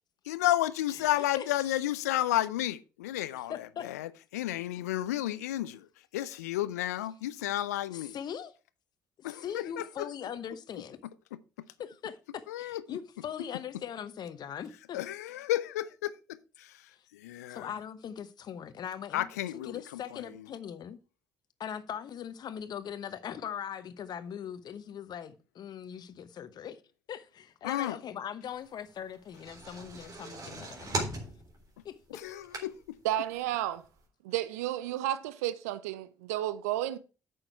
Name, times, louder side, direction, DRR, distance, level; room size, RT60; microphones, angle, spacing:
voice 1, 0.3-5.9 6.1-8.2 9.2-10.1 12.5-13.0 14.9-16.1 16.6-16.7 17.1-17.7 19.1-20.3 27.6-28.0 32.1-33.0, left 14 dB, 85° left, 0.5 m, -32 dB
voice 2, 0.9-1.7 3.5-3.9 7.9-8.5 9.2-11.0 11.8-15.0 16.9-17.0 17.5-19.3 19.6-21.0 21.6-26.8 27.1-31.1 31.8-31.9, left 8 dB, 55° left, 1.0 m, -40 dB
sound 1, 29.1-33.1 33.5-33.6 33.9-34.0, right 2 dB, 45° right, 3.6 m, -38 dB
voice 3, 33.0-33.8 34.2-37.0, right 13 dB, 80° right, 0.6 m, -32 dB
8.9 x 6.4 x 4.6 m
hypercardioid pair, 45°, 8 cm